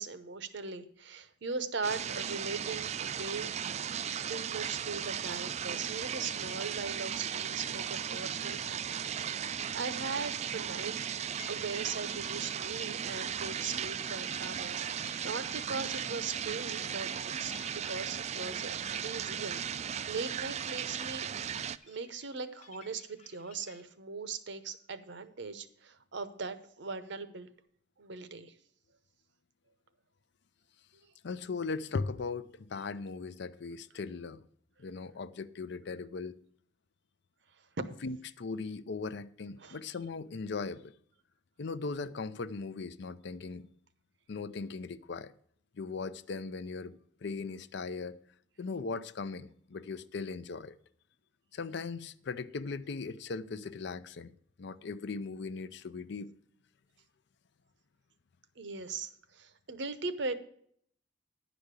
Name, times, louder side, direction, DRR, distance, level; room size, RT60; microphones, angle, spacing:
voice 1, 0.0-3.5 4.3-8.6 8.9-9.0 9.3-10.9 11.5-21.3 21.9-27.5 28.0-28.5 39.6-39.8 58.6-60.3, right 4 dB, 65° right, 0.8 m, -39 dB
sound 1, 1.8-21.8, right 8 dB, 35° right, 0.3 m, -36 dB
sound 2, 10.8-23.8, left 5 dB, 35° left, 1.0 m, -56 dB
voice 2, 31.2-34.4 34.8-36.4 38.0-40.9 41.6-43.7 44.3-45.3 45.8-48.2 48.6-50.8 51.5-54.3 54.6-56.3, left 4 dB, 60° left, 0.5 m, -38 dB
10.5 x 5.1 x 8.2 m
head